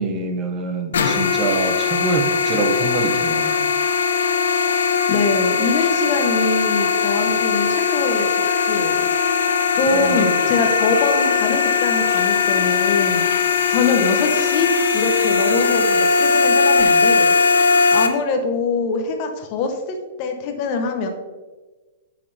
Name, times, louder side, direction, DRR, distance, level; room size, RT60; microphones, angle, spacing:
voice 1, 0.0-3.7 9.9-10.4, right 3 dB, 20° right, 4 dB, 0.8 m, -25 dB
sound 1, 0.9-18.1, left 5 dB, 90° left, 0.9 m, -19 dB
voice 2, 5.1-8.3 8.6-9.1 9.7-13.3 13.7-17.3 17.9-21.1, left 4 dB, 40° left, 5 dB, 1.0 m, -23 dB
8.3 x 5.9 x 3.4 m, 1.2 s
hypercardioid pair, 150°, 0 cm